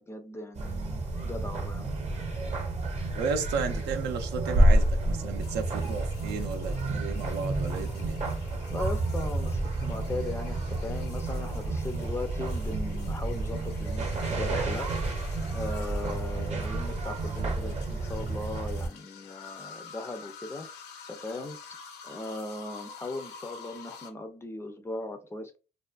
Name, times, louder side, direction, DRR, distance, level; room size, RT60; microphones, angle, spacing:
voice 1, 0.0-1.9 8.7-21.6 22.0-25.6, left 2 dB, 15° left, 0.4 m, -38 dB
sound 1, 0.5-18.9, right 2 dB, 40° right, 0.8 m, -29 dB
voice 2, 3.1-8.2, right 5 dB, 85° right, 0.6 m, -33 dB
sound 2, 5.4-24.1, left 6 dB, 80° left, 0.6 m, -49 dB
2.4 x 2.3 x 2.3 m
cardioid pair, 110°, 17 cm